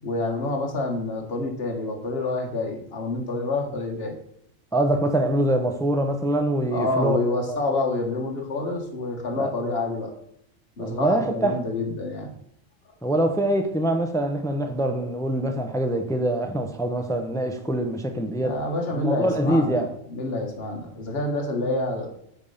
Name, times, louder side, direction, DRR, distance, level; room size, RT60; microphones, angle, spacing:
voice 1, 0.0-4.1 6.7-10.1 10.8-12.3 18.4-22.1, left 2 dB, 50° left, 1.6 m, -28 dB
voice 2, 4.7-7.2 7.5-7.6 9.4-9.5 10.8-11.6 13.0-18.6 18.9-19.9, right 1 dB, 5° left, 0.4 m, -24 dB
8.9 x 3.5 x 5.5 m
omnidirectional pair, 1.3 m